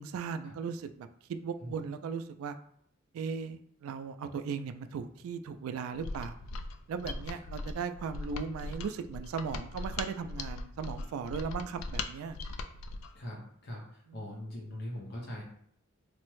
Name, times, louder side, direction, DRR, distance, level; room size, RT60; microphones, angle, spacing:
voice 1, 0.0-2.6 3.1-6.4 6.9-12.4 14.1-14.2, right 6 dB, 90° right, 11 dB, 0.3 m, -37 dB
Mechanisms, 5.9-13.1, left 3 dB, 80° left, 0.3 m, -40 dB
voice 2, 13.1-15.4, left 1 dB, 50° left, -3 dB, 0.7 m, -41 dB
3.3 x 2.0 x 3.1 m, 0.67 s
head